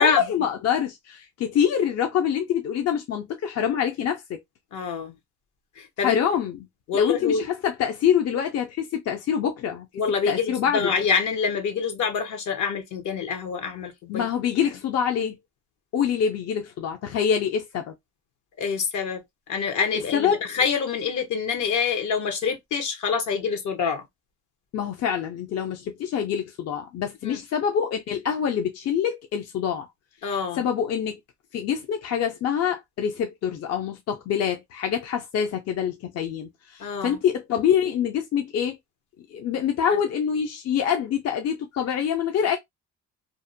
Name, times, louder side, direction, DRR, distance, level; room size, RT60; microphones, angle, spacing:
voice 1, 0.0-4.4 6.0-6.6 6.9-9.9 10.3-10.9 14.1-15.3 15.9-17.9 20.1-20.4 24.7-29.9 30.5-31.2 31.5-38.8 39.3-42.6, left 8 dB, 55° left, 0.5 m, -25 dB
voice 2, 4.7-5.1 5.8-6.2 6.9-7.5 9.9-14.2 18.6-19.2 19.5-24.0 27.2-27.4 30.2-30.6 36.8-37.2, left 6 dB, 75° left, 0.9 m, -26 dB
2.6 x 2.1 x 2.5 m
cardioid pair, 90°, 30 cm